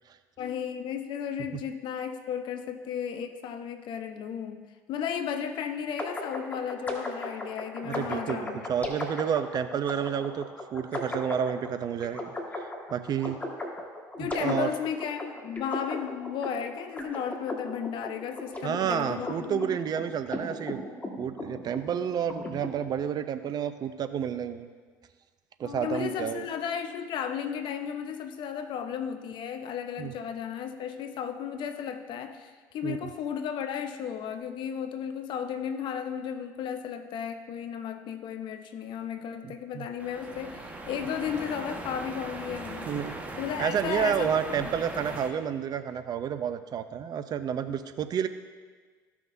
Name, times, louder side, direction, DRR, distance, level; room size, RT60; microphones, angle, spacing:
voice 1, 0.4-8.7 13.2-13.5 14.2-19.7 25.6-43.0 43.4-44.7, left 8 dB, 55° left, 8 dB, 0.9 m, -34 dB
sound 1, 6.0-22.7, left 1 dB, 15° left, 1.8 m, -37 dB
voice 2, 7.8-10.5 10.7-13.4 14.2-14.7 18.6-20.8 21.2-24.7 25.6-26.5 30.0-30.1 32.8-33.1 39.4-39.9 42.9-48.3, right 8 dB, 45° right, 11 dB, 0.6 m, -30 dB
sound 2, 40.0-45.3, right 2 dB, 15° right, 1.4 m, -39 dB
15.0 x 5.9 x 2.7 m, 1.5 s
hypercardioid pair, 70°, 9 cm